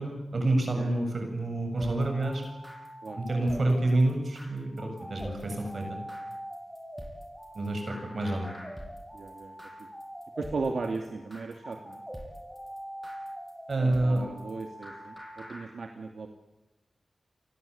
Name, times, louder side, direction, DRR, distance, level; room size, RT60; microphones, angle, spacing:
voice 1, 0.0-2.4 3.1-5.9 7.5-8.5 13.7-14.2, right 2 dB, 55° right, 4 dB, 7.7 m, -28 dB
voice 2, 0.7-1.1 3.0-3.2 9.1-9.5 10.4-12.0 13.8-16.3, right 4 dB, 75° right, 4 dB, 2.5 m, -36 dB
sound 1, 1.8-15.6, equal, ahead, 7.5 m, -43 dB
30.0 x 22.5 x 8.7 m, 0.95 s
wide cardioid pair, 115°, 0 cm